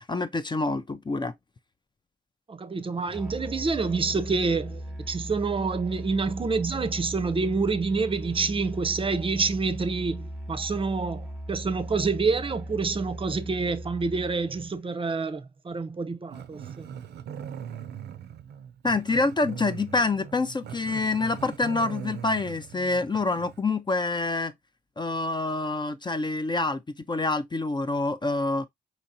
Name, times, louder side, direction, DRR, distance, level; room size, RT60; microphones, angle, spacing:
voice 1, 0.0-1.3 18.8-24.5 25.0-26.8 27.1-28.7, left 3 dB, 25° left, 0.5 m, -27 dB
voice 2, 2.5-16.9, right 4 dB, 30° right, 0.5 m, -27 dB
Musical instrument, 3.1-14.8, equal, ahead, 1.1 m, -38 dB
Growling, 16.3-23.6, right 8 dB, 75° right, 0.5 m, -40 dB
4.1 x 2.9 x 2.6 m
cardioid pair, 60°, 17 cm